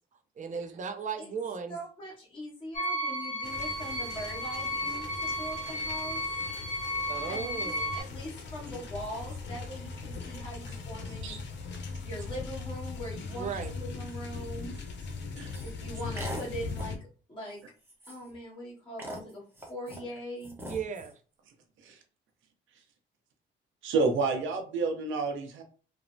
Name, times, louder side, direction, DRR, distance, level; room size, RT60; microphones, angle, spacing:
voice 1, 0.4-1.8 7.1-7.9 13.3-13.7 20.7-21.1, right 6 dB, 40° right, 6 dB, 0.5 m, -36 dB
voice 2, 1.7-6.2 7.3-11.4 11.9-14.8 15.6-17.6 18.1-19.4 19.7-20.5, equal, 25° left, -5 dB, 1.5 m, -41 dB
sound 1, 2.7-8.0, equal, 40° left, 1.1 m, -33 dB
sound 2, 3.4-17.0, left 4 dB, 65° left, 0.6 m, -40 dB
sound 3, 15.5-15.7 16.2-16.5 16.8-17.0 17.5-17.6 17.9-18.4 19.0-20.0 20.4-21.1, equal, 10° right, 0.9 m, -41 dB
voice 3, 23.8-25.6, right 4 dB, 80° right, 4 dB, 0.7 m, -29 dB
3.0 x 2.0 x 2.6 m, 0.38 s
cardioid pair, 90°, 20 cm